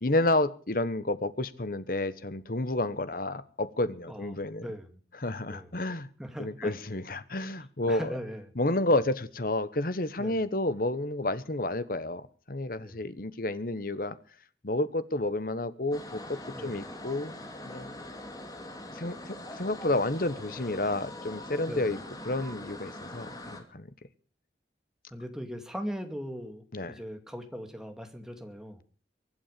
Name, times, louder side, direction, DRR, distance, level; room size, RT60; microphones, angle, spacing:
voice 1, 0.0-4.7 5.2-6.1 6.4-8.1 8.6-14.2 14.6-17.4 17.6-18.0 18.9-22.0 22.2-23.9 26.7-27.0, left 2 dB, 55° left, 14 dB, 1.2 m, -30 dB
voice 2, 4.1-4.9 5.5-5.7 6.2-6.7 7.9-8.5 8.9-9.0 10.2-10.4 12.8-13.0 16.5-16.8 21.7-21.9 25.1-28.8, equal, 5° right, 5 dB, 2.3 m, -39 dB
sound 1, 15.9-23.6, left 1 dB, 20° left, 2.9 m, -43 dB
23.5 x 8.6 x 6.8 m, 0.41 s
head